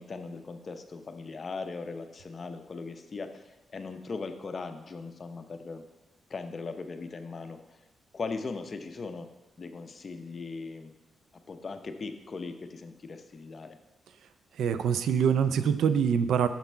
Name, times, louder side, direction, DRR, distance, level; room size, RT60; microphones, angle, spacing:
voice 1, 0.0-5.8 6.3-7.6 8.1-9.3 9.6-10.9 11.5-13.8, left 4 dB, 40° left, 7 dB, 0.7 m, -39 dB
voice 2, 14.6-16.5, right 7 dB, 80° right, 12 dB, 0.4 m, -24 dB
6.9 x 5.9 x 4.4 m, 1.0 s
cardioid pair, 90°, 0 cm